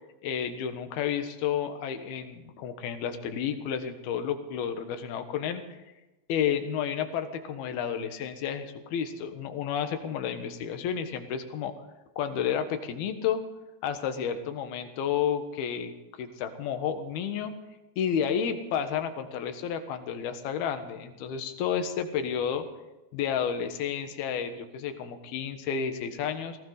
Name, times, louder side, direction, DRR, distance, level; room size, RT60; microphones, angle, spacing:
voice 1, 0.2-5.6 6.3-11.7 12.2-13.4 13.8-15.9 16.2-17.5 18.0-22.7 23.1-26.6, left 8 dB, 65° left, 7 dB, 3.0 m, -31 dB
20.0 x 18.0 x 4.1 m, 1.0 s
omnidirectional pair, 5.3 m